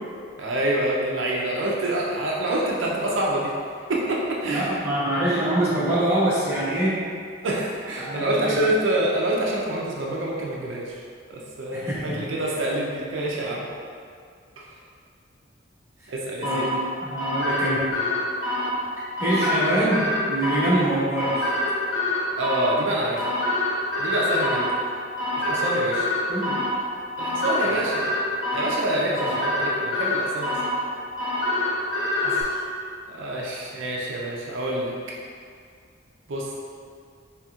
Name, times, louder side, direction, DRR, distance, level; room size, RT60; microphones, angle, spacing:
voice 1, 0.4-3.5 3.9-4.8 7.4-13.7 14.6-14.7 16.1-16.7 22.4-23.3 24.0-24.7 25.4-26.1 27.2-28.0 28.5-30.6 32.2-32.4 33.1-34.9 36.3-36.5, right 1 dB, 80° right, -3 dB, 0.5 m, -26 dB
voice 2, 4.5-7.0 8.0-8.6 11.7-12.3 16.0-16.1 16.4-18.0 19.2-21.5 26.3-26.5 27.6-27.8 29.2-29.3 31.9-32.4, right 1 dB, 15° right, -12 dB, 1.2 m, -25 dB
sound 1, 16.4-32.4, left 1 dB, 80° left, 0.8 m, -26 dB
4.3 x 3.4 x 2.4 m, 2.2 s
head